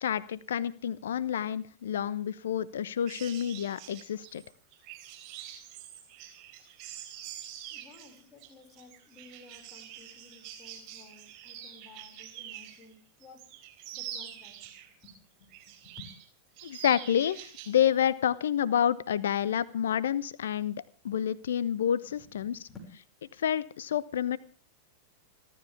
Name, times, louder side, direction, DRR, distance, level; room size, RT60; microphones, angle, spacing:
voice 1, 0.0-4.4 16.6-22.6 23.4-24.4, left 9 dB, 65° left, 19 dB, 1.0 m, -29 dB
sound 1, 3.1-12.9 13.2-15.1 15.5-16.3 16.6-17.8 18.1-18.3, right 10 dB, 40° right, 3.9 m, -45 dB
voice 2, 7.7-13.4 13.9-14.7 15.0-16.1 22.1-22.9, left 3 dB, 20° left, 2 dB, 5.9 m, -54 dB
29.0 x 13.0 x 3.6 m, 0.38 s
figure-of-eight pair, 90°, 0 cm